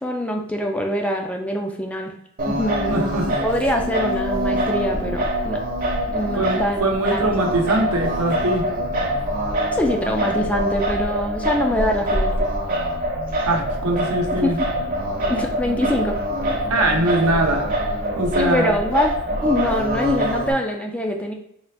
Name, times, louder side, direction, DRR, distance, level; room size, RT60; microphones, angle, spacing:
voice 1, 0.0-2.1 2.4-2.9 3.4-5.6 6.1-6.8 7.1-7.3 9.7-12.5 14.4-14.6 15.3-16.2 18.3-19.1 19.4-21.3, equal, 5° left, 2 dB, 0.3 m, -24 dB
Singing, 2.4-20.5, equal, 40° right, 0.8 m, -24 dB
voice 2, 2.9-3.3 6.3-8.7 13.5-14.6 16.7-17.7 18.2-18.8, right 1 dB, 85° right, 2 dB, 0.8 m, -22 dB
3.8 x 2.4 x 3.3 m, 0.74 s
head